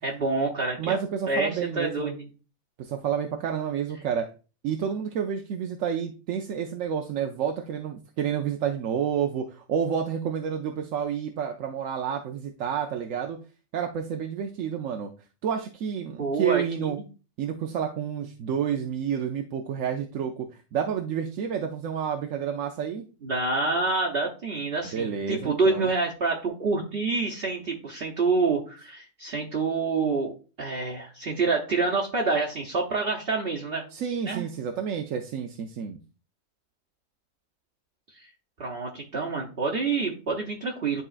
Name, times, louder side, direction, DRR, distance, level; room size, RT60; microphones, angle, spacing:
voice 1, 0.0-1.0 1.3-2.3 16.2-17.0 23.2-30.3 30.6-33.8 34.3-34.5 38.6-41.0, right 3 dB, 50° right, -3 dB, 1.1 m, -27 dB
voice 2, 0.8-2.1 2.8-4.3 4.6-13.4 13.7-15.1 15.4-17.0 17.4-20.3 20.7-23.1 24.9-25.9 33.9-36.0, right 8 dB, 75° right, 4 dB, 1.0 m, -29 dB
11.0 x 3.6 x 2.4 m, 0.34 s
omnidirectional pair, 1.4 m